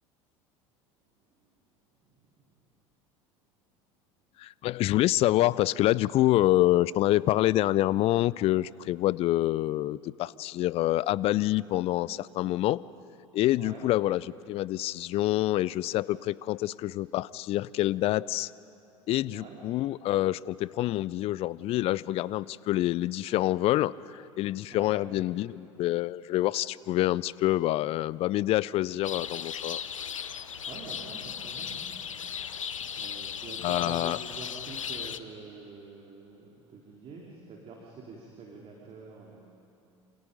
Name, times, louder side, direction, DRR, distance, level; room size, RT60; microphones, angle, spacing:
voice 1, 4.4-12.8 13.3-18.5 19.1-29.8 33.6-34.2, left 15 dB, 35° left, 21 dB, 0.4 m, -27 dB
sound 1, 29.0-35.2, left 8 dB, 80° left, 0.7 m, -37 dB
voice 2, 30.7-31.9 32.9-39.5, right 3 dB, 35° right, -2 dB, 3.1 m, -46 dB
27.5 x 27.5 x 5.2 m, 2.7 s
figure-of-eight pair, 75°, 17 cm